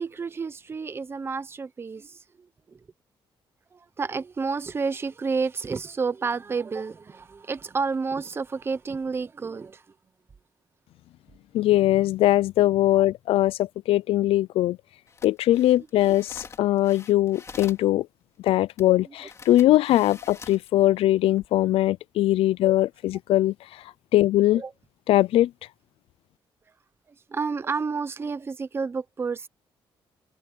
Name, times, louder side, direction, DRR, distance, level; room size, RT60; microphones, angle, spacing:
voice 1, 0.0-2.8 3.7-9.8 24.5-24.7 27.3-29.5, right 4 dB, 25° right, 0.8 m, -30 dB
voice 2, 11.5-14.8 15.2-18.1 18.4-23.8 24.1-24.6 25.1-25.5, left 14 dB, 90° left, 0.4 m, -21 dB
sound 1, 15.1-17.9 18.8-18.9 19.2-20.7 21.2-21.5, left 5 dB, 30° left, 2.7 m, -45 dB
cardioid pair, 150°, 9 cm